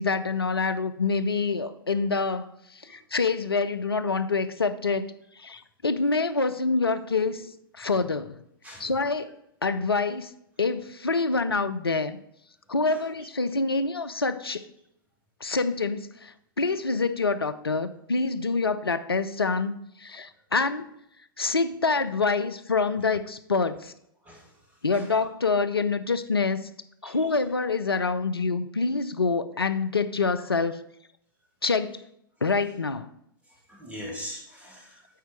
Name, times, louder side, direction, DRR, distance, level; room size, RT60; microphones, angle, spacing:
voice 1, 0.0-7.5 7.7-8.4 8.8-9.4 9.6-10.3 10.6-12.2 12.7-14.6 15.4-20.9 21.4-23.9 24.8-26.6 27.0-30.8 31.6-32.0 32.4-33.1, left 4 dB, 85° left, 10 dB, 0.4 m, -26 dB
voice 2, 33.7-35.2, left 1 dB, 10° right, -2 dB, 2.5 m, -41 dB
8.3 x 4.6 x 4.4 m, 0.76 s
figure-of-eight pair, 100°, 12 cm